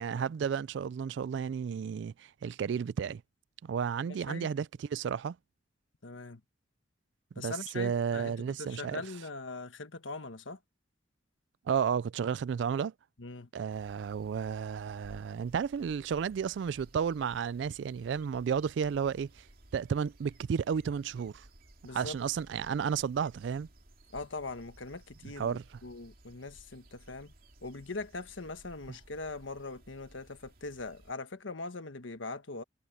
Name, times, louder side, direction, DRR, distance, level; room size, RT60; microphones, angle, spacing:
voice 1, 0.0-3.2 3.6-5.4 7.4-9.0 11.7-12.9 13.5-19.4 19.7-21.5 21.9-23.7 25.4-25.6, right 7 dB, 65° right, 0.3 m, -32 dB
voice 2, 4.1-4.5 6.0-6.4 7.3-10.6 13.2-13.5 21.8-22.2 24.1-27.3 27.6-32.6, left 3 dB, 85° left, 1.4 m, -41 dB
sound 1, 13.7-31.1, right 1 dB, 50° right, 2.8 m, -58 dB
head